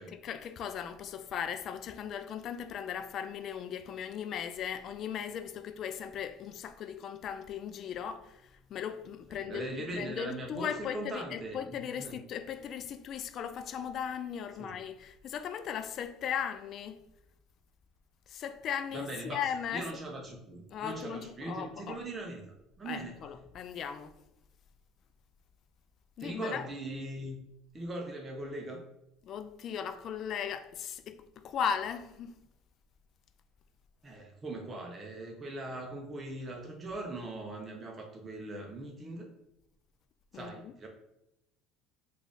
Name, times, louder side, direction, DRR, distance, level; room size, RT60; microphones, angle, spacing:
voice 1, 0.2-8.4 8.7-17.0 18.3-19.9 20.7-22.0 22.9-24.1 26.2-26.7 29.2-32.4 40.3-40.7, left 8 dB, 50° left, 0.3 m, -37 dB
voice 2, 9.4-12.2 14.6-14.7 18.9-23.1 26.2-27.4 27.7-28.8 34.0-39.3 40.3-40.9, right 2 dB, 25° right, 0.6 m, -40 dB
3.2 x 2.4 x 3.8 m
supercardioid pair, 90°, 0 cm